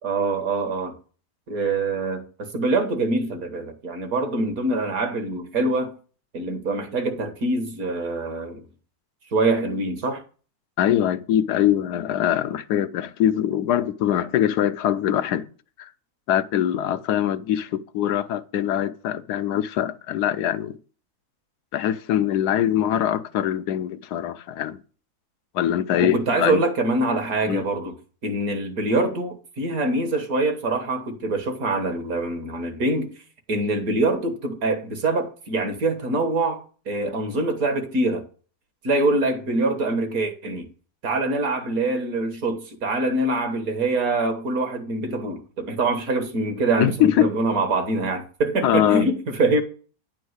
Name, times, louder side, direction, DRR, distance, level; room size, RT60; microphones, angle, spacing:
voice 1, 0.0-1.0 1.5-5.9 6.3-8.6 9.3-10.2 26.0-27.9 28.2-33.1 33.5-38.2 38.8-40.7 41.0-49.6, right 2 dB, 65° right, 1.9 m, -24 dB
voice 2, 10.8-15.5 15.8-15.9 16.3-20.8 21.7-24.8 25.5-26.6 27.5-27.7 46.8-47.3 48.6-49.1, left 11 dB, 90° left, 1.2 m, -23 dB
10.0 x 4.6 x 7.9 m
omnidirectional pair, 1.6 m